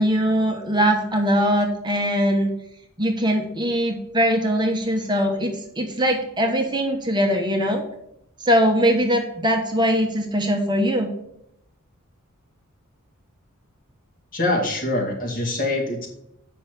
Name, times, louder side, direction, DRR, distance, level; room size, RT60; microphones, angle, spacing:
voice 1, 0.0-2.5 3.0-7.8 8.4-11.1, equal, 20° right, 3 dB, 1.1 m, -21 dB
voice 2, 14.3-16.1, left 2 dB, 40° left, 0 dB, 2.2 m, -24 dB
7.8 x 5.7 x 6.7 m, 0.77 s
head